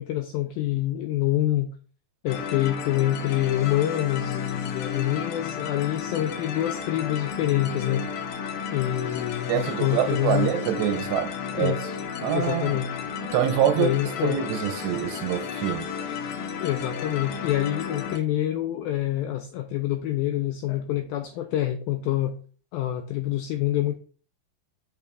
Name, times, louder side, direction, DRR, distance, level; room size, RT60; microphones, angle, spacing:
voice 1, 0.0-1.7 2.2-8.2 8.7-10.5 11.6-12.0 12.3-13.0 13.8-14.4 16.6-22.4 22.7-24.0, left 13 dB, 85° left, 2.1 m, -26 dB
sound 1, 2.3-18.2, left 7 dB, 70° left, 2.2 m, -33 dB
voice 2, 9.5-11.7 12.2-12.8 13.3-13.9 14.2-15.9, right 10 dB, 90° right, 3.1 m, -25 dB
6.9 x 5.9 x 3.5 m
omnidirectional pair, 4.9 m